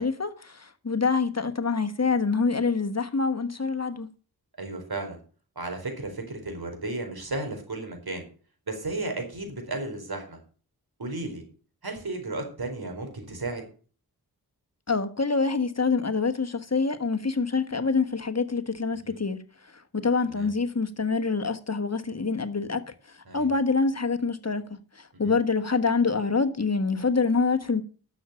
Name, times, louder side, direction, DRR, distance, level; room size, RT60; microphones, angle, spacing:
voice 1, 0.0-4.1 14.9-19.4 19.7-27.8, left 4 dB, 40° left, 1.4 m, -26 dB
voice 2, 4.6-5.2 5.6-8.2 8.7-10.4 11.0-11.4 11.8-13.6 19.0-19.2 20.3-20.5 23.3-23.5 25.2-25.3, right 2 dB, 70° right, 4.6 m, -34 dB
12.0 x 7.2 x 6.9 m
cardioid pair, 45°, 38 cm